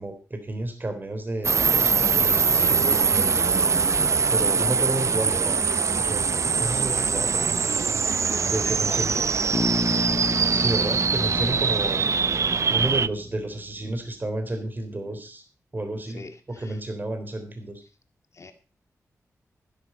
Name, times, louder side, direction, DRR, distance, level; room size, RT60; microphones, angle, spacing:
voice 1, 0.0-3.4 4.3-5.6 6.0-7.5 8.4-9.1 10.5-12.0 12.7-15.4 15.7-16.2 16.6-17.8, right 2 dB, 30° right, 6 dB, 3.6 m, -31 dB
sound 1, 1.4-13.1, right 5 dB, 55° right, 0.5 m, -23 dB
voice 2, 8.2-9.4 16.1-16.8 18.3-18.5, left 4 dB, 55° left, 8 dB, 2.2 m, -41 dB
Bass guitar, 9.5-13.4, left 2 dB, 30° left, 1.2 m, -31 dB
11.5 x 11.0 x 5.4 m, 0.33 s
cardioid pair, 60°, 6 cm